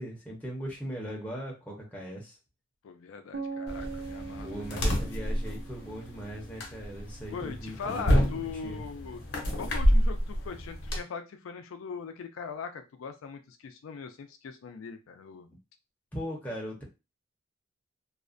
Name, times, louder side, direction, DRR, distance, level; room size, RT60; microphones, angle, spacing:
voice 1, 0.0-2.4 4.4-8.8 16.1-16.8, equal, 10° left, -2 dB, 0.6 m, -39 dB
voice 2, 2.8-4.7 7.3-9.2 9.6-15.5, left 5 dB, 80° left, 7 dB, 0.3 m, -40 dB
sound 1, 3.3-7.2, right 4 dB, 60° right, 0.4 m, -42 dB
sound 2, 3.7-11.0, equal, 55° left, 0.7 m, -29 dB
2.4 x 2.1 x 2.4 m, 0.27 s
head